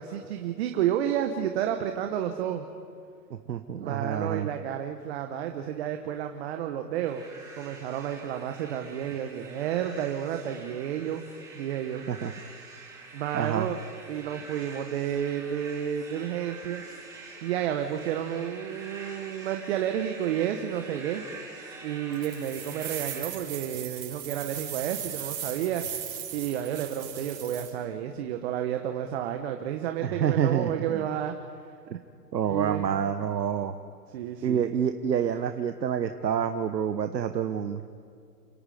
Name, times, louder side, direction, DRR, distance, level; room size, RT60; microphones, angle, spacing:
voice 1, 0.0-2.6 3.8-7.2 7.6-11.2 11.5-12.0 13.1-13.8 14.1-16.8 17.4-21.2 21.8-25.8 26.3-31.3 32.4-32.9 34.1-34.6, right 10 dB, 40° right, 5 dB, 1.4 m, -31 dB
voice 2, 3.3-4.5 12.1-12.3 13.3-13.7 30.0-31.1 31.9-32.0 32.3-33.7 34.4-37.8, right 8 dB, 85° right, 8 dB, 1.2 m, -28 dB
sound 1, 7.0-23.2, right 3 dB, 5° right, 3.9 m, -46 dB
sound 2, 22.1-27.7, right 10 dB, 60° right, 5.2 m, -38 dB
30.0 x 18.0 x 5.2 m, 2.3 s
hypercardioid pair, 145°, 49 cm